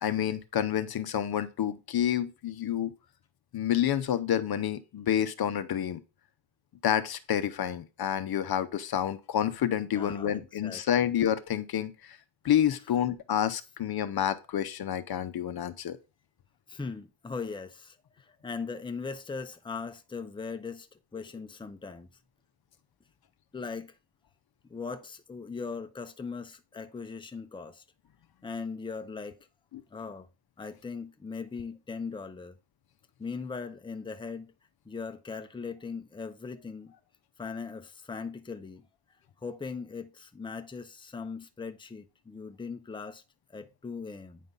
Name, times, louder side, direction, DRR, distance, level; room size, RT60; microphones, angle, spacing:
voice 1, 0.0-2.9 3.5-6.0 6.8-12.2 12.4-16.0, left 10 dB, 55° left, 0.7 m, -29 dB
voice 2, 9.9-10.8 16.7-22.1 23.5-23.9 24.7-27.8 28.4-29.4 29.9-30.3 30.6-32.6 33.2-34.5 34.9-36.9 37.4-38.8 39.4-43.2 43.5-44.4, left 5 dB, 10° left, 0.7 m, -39 dB
9.2 x 3.7 x 5.4 m
wide cardioid pair, 140°, 45 cm